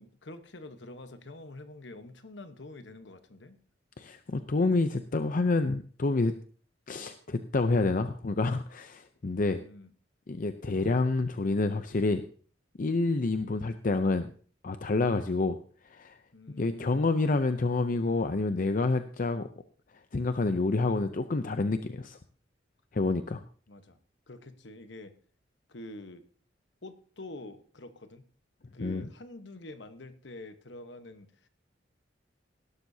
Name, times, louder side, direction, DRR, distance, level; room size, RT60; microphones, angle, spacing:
voice 1, 0.0-3.6 9.4-9.9 16.3-17.0 23.7-24.0 24.3-25.1 25.7-26.2 26.8-28.2 28.7-31.5, left 2 dB, 65° left, 9 dB, 1.2 m, -46 dB
voice 2, 4.0-6.3 6.9-9.6 10.3-12.2 12.8-14.3 14.6-15.6 15.9-16.2 16.6-19.5 20.1-22.2 22.9-23.4 28.8-29.1, left 3 dB, 45° left, 9 dB, 0.6 m, -28 dB
18.0 x 12.0 x 2.8 m, 0.43 s
head